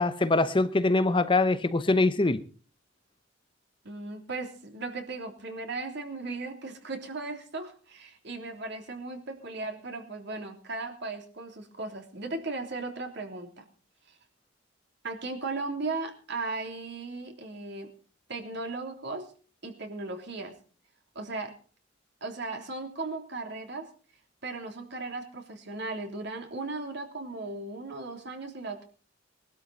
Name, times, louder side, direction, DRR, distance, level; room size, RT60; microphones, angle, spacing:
voice 1, 0.0-2.4, left 2 dB, 25° left, 0.8 m, -23 dB
voice 2, 3.8-13.6 14.1-14.2 15.0-17.9 18.3-19.3 19.6-20.5 21.1-21.5 22.2-23.9 24.4-28.8, right 3 dB, 60° right, 3.2 m, -37 dB
20.5 x 12.5 x 4.2 m
head